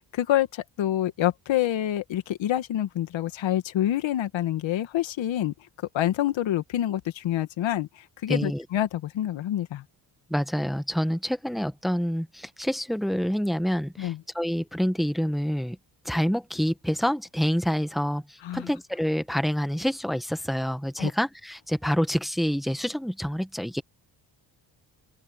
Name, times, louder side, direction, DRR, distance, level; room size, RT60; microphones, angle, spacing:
voice 1, 0.1-5.5 5.9-9.8 14.0-14.2 18.4-18.7 21.0-21.1, left 12 dB, 75° left, 2.1 m, -27 dB
voice 2, 8.3-8.6 10.3-15.8 16.1-23.8, equal, ahead, 1.7 m, -27 dB
open air
supercardioid pair, 65°, 46 cm